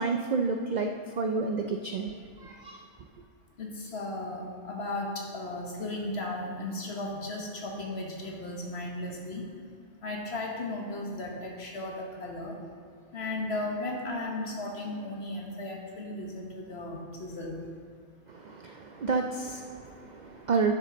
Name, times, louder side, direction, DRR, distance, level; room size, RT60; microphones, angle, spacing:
voice 1, 0.0-2.1 2.4-2.8 18.3-20.7, right 4 dB, 80° right, 4 dB, 0.4 m, -30 dB
voice 2, 3.6-9.4 10.0-12.5 13.1-17.6, left 2 dB, 55° left, 0 dB, 1.5 m, -35 dB
10.5 x 6.7 x 3.8 m, 2.2 s
omnidirectional pair, 1.4 m